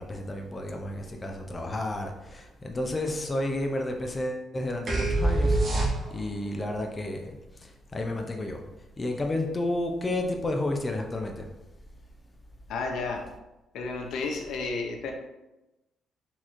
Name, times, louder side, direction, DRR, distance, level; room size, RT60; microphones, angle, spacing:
voice 1, 0.0-5.6 6.1-7.3 7.6-8.6 9.0-11.5, left 1 dB, 20° left, 2 dB, 0.3 m, -31 dB
sound 1, 4.9-6.4, right 2 dB, 45° right, 0.9 m, -24 dB
voice 2, 12.7-13.3 13.7-15.1, left 3 dB, 75° left, 2 dB, 0.6 m, -32 dB
4.1 x 3.0 x 2.4 m, 0.98 s
cardioid pair, 135°, 0 cm